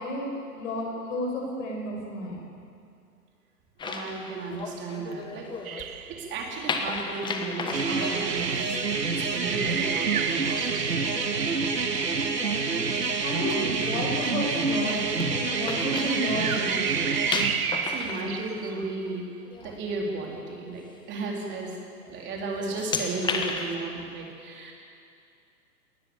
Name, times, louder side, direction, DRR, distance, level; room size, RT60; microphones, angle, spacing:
voice 1, 0.0-2.4 12.3-12.9 13.2-16.8, left 1 dB, 50° left, -1 dB, 6.7 m, -32 dB
sound 1, 3.8-5.9 6.7-8.8 11.7-12.0 12.5-12.6 13.3-16.6 16.9-19.1 19.5-19.8 20.2-20.3 21.3-21.6 22.0-22.3 22.5-23.8, left 4 dB, 10° left, 1.2 m, -35 dB
voice 2, 3.8-5.5 5.9-11.5 17.5-19.2 19.6-21.8 22.1-24.7, right 3 dB, 20° right, -1 dB, 3.9 m, -35 dB
sound 2, 5.6-6.6 9.4-12.6 15.9-19.1, right 8 dB, 60° right, 1.4 m, -33 dB
sound 3, 7.7-17.5, right 4 dB, 80° right, 2.0 m, -27 dB
20.5 x 19.0 x 7.2 m, 2.4 s
hypercardioid pair, 125°, 48 cm